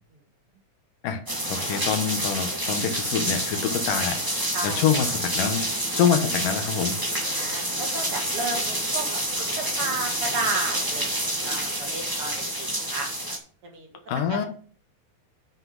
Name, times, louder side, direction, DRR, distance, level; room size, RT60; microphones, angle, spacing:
sound 1, 1.3-13.4, right 1 dB, 10° right, 1.0 m, -28 dB
voice 1, 1.5-5.6 5.9-7.0 14.1-14.5, left 7 dB, 90° left, 7 dB, 2.8 m, -26 dB
voice 2, 4.5-5.1 7.3-9.2 9.8-13.4 13.6-13.9 14.3-14.5, right 3 dB, 50° right, 1 dB, 2.6 m, -33 dB
7.8 x 6.0 x 5.5 m, 0.42 s
omnidirectional pair, 3.7 m